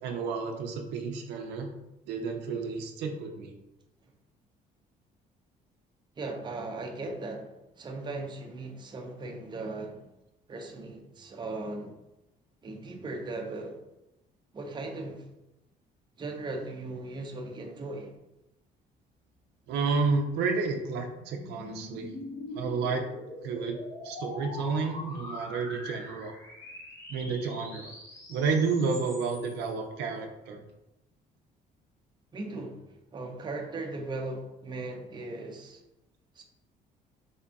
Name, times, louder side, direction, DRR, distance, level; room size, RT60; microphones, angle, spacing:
voice 1, 0.0-1.7 2.1-3.5 19.7-22.1 22.5-23.1 23.4-26.3 27.1-27.9 28.3-30.6, right 4 dB, 85° right, 3 dB, 0.5 m, -31 dB
voice 2, 6.2-10.0 10.5-11.9 12.6-13.8 14.5-15.2 16.2-18.1 32.3-32.8 33.1-35.8 36.4-36.5, right 2 dB, 25° right, 2 dB, 0.6 m, -38 dB
sound 1, 20.6-29.7, left 1 dB, 20° left, 0.9 m, -43 dB
3.5 x 2.3 x 3.9 m, 0.92 s
cardioid pair, 110°, 17 cm